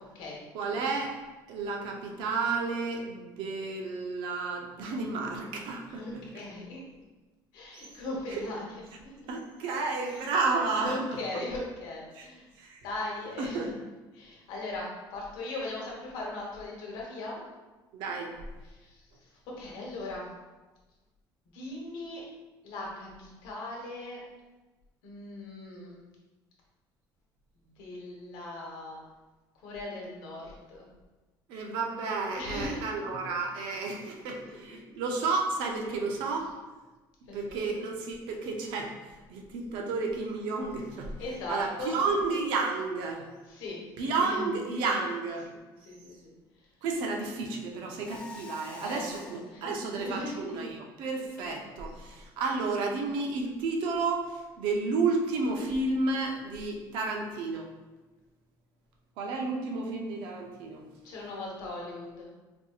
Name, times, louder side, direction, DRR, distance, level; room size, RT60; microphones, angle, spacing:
voice 1, 0.5-1.2 1.5-6.2 7.7-7.9 8.3-8.4 9.3-11.2 12.1-12.3 12.6-12.8 13.4-13.7 17.9-18.3 31.5-36.5 37.3-43.3 44.0-45.5 45.8-45.9 46.8-57.7 59.2-60.9, right 3 dB, 85° right, 1 dB, 0.6 m, -32 dB
voice 2, 5.9-6.8 7.5-8.6 8.9-9.1 10.8-12.5 12.8-13.7 14.1-17.4 18.7-19.0 19.5-20.3 21.5-22.2 22.6-24.2 25.0-26.0 27.8-29.0 29.6-30.8 32.3-32.9 34.7-34.8 37.3-37.6 41.2-41.9 43.5-43.8 44.2-44.5 44.9-45.0 45.8-46.3 48.8-49.1 49.5-50.4 52.0-52.2 61.0-62.3, left 2 dB, 90° left, -3 dB, 1.1 m, -39 dB
Mechanisms, 48.0-49.5, left 2 dB, 15° left, 0.4 m, -46 dB
4.3 x 2.7 x 2.4 m, 1.2 s
cardioid pair, 170°, 8 cm